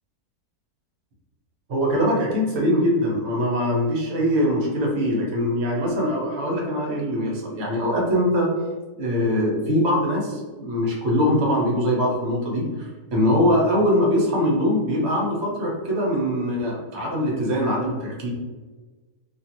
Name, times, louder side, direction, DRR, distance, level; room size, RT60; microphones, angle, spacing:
voice 1, 1.7-8.5 9.0-18.3, equal, 55° right, -3 dB, 0.8 m, -22 dB
2.5 x 2.4 x 2.8 m, 1.3 s
omnidirectional pair, 1.6 m